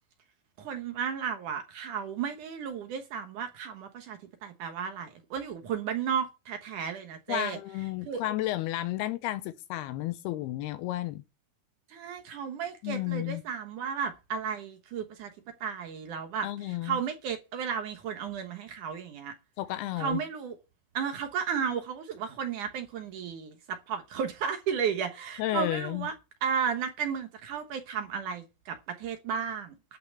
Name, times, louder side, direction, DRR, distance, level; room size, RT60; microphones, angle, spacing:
voice 1, 0.6-7.6 8.1-8.2 11.9-15.3 15.6-19.3 20.0-20.6 20.9-26.1 26.4-30.0, right 7 dB, 65° right, 2.4 m, -34 dB
voice 2, 7.3-11.2 12.8-13.4 16.4-17.0 19.6-20.2 25.4-26.1, left 15 dB, 85° left, 2.7 m, -32 dB
11.5 x 5.8 x 7.8 m
omnidirectional pair, 4.5 m